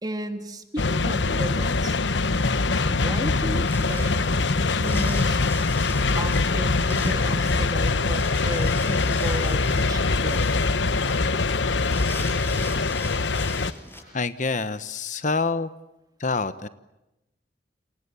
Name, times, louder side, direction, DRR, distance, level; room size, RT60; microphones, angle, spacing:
voice 1, 0.0-2.0 2.9-4.3 4.6-5.4 6.1-10.6, right 1 dB, 20° right, 7 dB, 2.9 m, -34 dB
sound 1, 0.8-13.7, left 3 dB, 80° left, 1.1 m, -23 dB
Wind, 2.8-14.0, left 2 dB, 15° left, 7.7 m, -41 dB
voice 2, 14.1-15.7 16.2-16.7, left 4 dB, 45° left, 13 dB, 1.1 m, -26 dB
29.0 x 28.0 x 7.1 m, 0.94 s
head